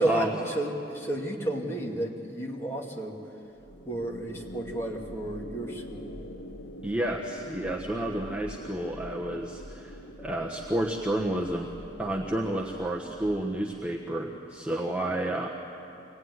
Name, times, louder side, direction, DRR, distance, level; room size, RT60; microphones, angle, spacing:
voice 1, 0.0-3.2 3.8-6.2, right 1 dB, 15° left, -1 dB, 2.4 m, -32 dB
sound 1, 3.5-14.0, equal, 80° left, 1.3 m, -44 dB
voice 2, 6.8-11.7 12.0-15.5, right 1 dB, 5° right, -2 dB, 1.2 m, -30 dB
25.0 x 18.5 x 9.6 m, 2.8 s
head